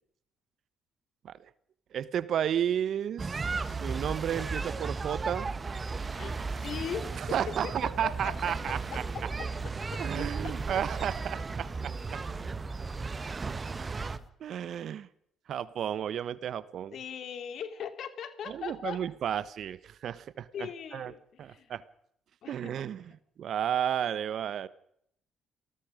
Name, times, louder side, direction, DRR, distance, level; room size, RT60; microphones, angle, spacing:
voice 1, 1.9-5.5 7.2-9.3 10.0-12.2 14.4-15.1 15.5-16.9 18.4-21.1 21.4-21.8 22.5-23.1 23.4-24.7, right 9 dB, 60° right, 17 dB, 1.2 m, -33 dB
sound 1, 3.2-14.2, right 4 dB, 35° right, 1.5 m, -35 dB
voice 2, 6.1-9.3 9.9-10.8 14.2-14.3 16.9-19.1 20.5-21.7 22.4-22.8, left 8 dB, 60° left, 10 dB, 2.6 m, -40 dB
sound 2, 7.9-14.3, right 1 dB, 15° right, 2.1 m, -50 dB
28.0 x 19.0 x 5.2 m, 0.70 s
hypercardioid pair, 55°, 0 cm